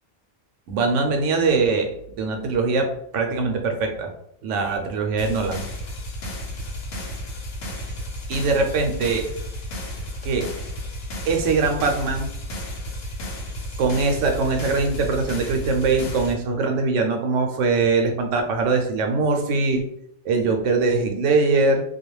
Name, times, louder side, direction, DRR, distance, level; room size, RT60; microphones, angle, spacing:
voice 1, 0.7-1.9 2.2-4.1 4.4-5.6 8.3-9.2 10.2-10.5 11.2-12.3 13.8-19.8 20.2-21.8, right 4 dB, 80° right, 4 dB, 0.9 m, -22 dB
sound 1, 5.2-16.3, left 1 dB, 90° left, 1.0 m, -33 dB
2.4 x 2.2 x 3.0 m, 0.70 s
omnidirectional pair, 1.3 m